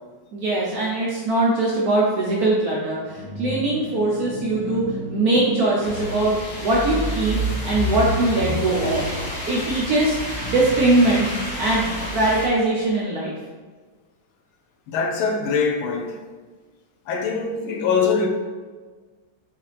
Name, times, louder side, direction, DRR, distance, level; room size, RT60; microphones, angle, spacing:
voice 1, 0.3-4.8 5.1-9.0 9.5-10.2 10.4-11.3 11.6-13.3, right 2 dB, 70° right, 0.9 m, -21 dB
sound 1, 2.8-8.3, equal, 25° right, 1.2 m, -34 dB
sound 2, 5.8-12.5, equal, 45° left, 1.2 m, -28 dB
voice 2, 14.9-16.2 17.1-18.3, left 5 dB, 80° left, 1.4 m, -23 dB
5.6 x 2.8 x 3.3 m
omnidirectional pair, 2.3 m